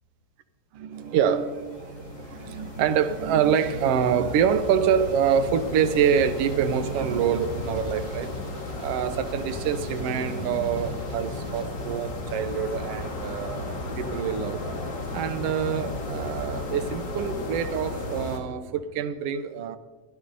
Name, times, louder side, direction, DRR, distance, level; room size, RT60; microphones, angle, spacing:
voice 1, 0.7-8.3 8.8-19.8, right 8 dB, 70° right, 1.6 m, -26 dB
sound 1, 0.9-18.4, left 2 dB, 40° left, 2.2 m, -34 dB
sound 2, 4.3-11.6, right 3 dB, 55° right, 1.7 m, -49 dB
sound 3, 5.0-13.4, equal, 85° left, 7.3 m, -53 dB
23.5 x 13.0 x 2.7 m
omnidirectional pair, 3.3 m